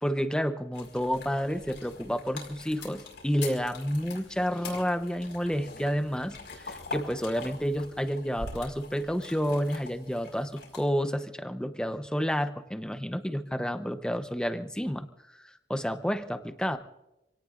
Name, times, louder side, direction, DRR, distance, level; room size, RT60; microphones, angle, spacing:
voice 1, 0.0-15.1 15.4-16.8, equal, 5° left, 8 dB, 0.8 m, -30 dB
sound 1, 0.7-10.9, left 3 dB, 70° left, 5.0 m, -43 dB
27.0 x 18.0 x 2.5 m, 0.91 s
head